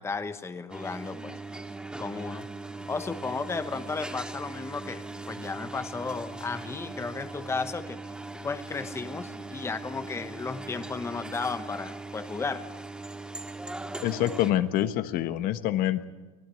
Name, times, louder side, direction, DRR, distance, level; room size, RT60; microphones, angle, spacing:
voice 1, 0.0-1.3 2.0-2.5 2.9-8.0 8.4-12.6, left 4 dB, 15° left, 11 dB, 1.1 m, -34 dB
sound 1, 0.7-14.5, right 2 dB, 5° right, 2.0 m, -40 dB
voice 2, 14.0-16.0, left 13 dB, 50° left, 11 dB, 1.4 m, -26 dB
25.0 x 17.0 x 9.5 m, 1.2 s
hypercardioid pair, 100°, 20 cm